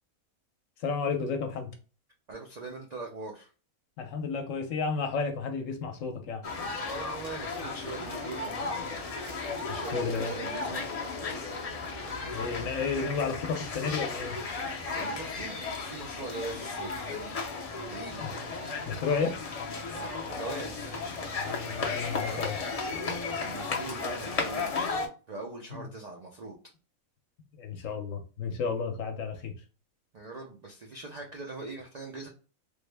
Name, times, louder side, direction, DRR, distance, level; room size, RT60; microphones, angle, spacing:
voice 1, 0.8-1.7 4.0-6.4 9.7-10.3 12.2-14.4 18.2-18.4 18.8-19.4 21.4-22.6 25.7-25.9 27.5-29.6, left 5 dB, 70° left, 1.0 m, -32 dB
voice 2, 2.3-3.5 6.9-8.6 9.7-10.9 15.0-18.2 20.3-20.9 23.4-24.8 25.3-26.6 30.1-32.3, right 3 dB, 70° right, 0.4 m, -41 dB
sound 1, 6.4-25.1, left 4 dB, 45° left, 0.4 m, -35 dB
3.4 x 2.0 x 3.2 m
omnidirectional pair, 1.5 m